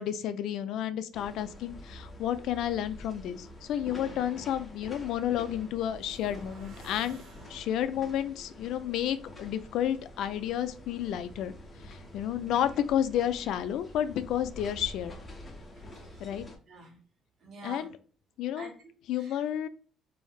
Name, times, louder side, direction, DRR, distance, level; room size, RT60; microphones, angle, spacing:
voice 1, 0.0-7.2 7.5-11.5 11.9-15.2 16.2-16.4 17.6-17.9 18.4-18.7 19.1-19.7, left 10 dB, 70° left, 0.3 m, -31 dB
sound 1, 1.1-16.6, left 1 dB, 20° left, 0.8 m, -47 dB
sound 2, 5.5-8.1, right 1 dB, 70° right, 1.0 m, -51 dB
voice 2, 15.7-16.4 16.7-17.0 17.4-17.9 18.6-19.4, right 2 dB, 50° right, 1.4 m, -49 dB
3.2 x 2.7 x 2.3 m
cardioid pair, 115°, 0 cm